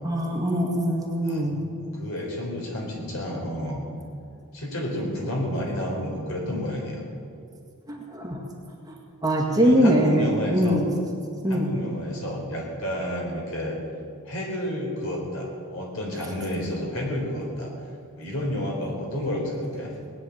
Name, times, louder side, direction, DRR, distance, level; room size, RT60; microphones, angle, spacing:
voice 1, 0.0-1.6 7.9-8.4 8.8-9.0 9.2-10.9 11.4-11.7, equal, 15° right, -1 dB, 1.9 m, -22 dB
voice 2, 1.2-3.8 4.5-7.0 9.4-10.8 11.5-13.8 14.2-17.7 18.2-19.9, left 1 dB, 65° left, -1 dB, 4.2 m, -30 dB
19.5 x 9.7 x 7.3 m, 2.4 s
head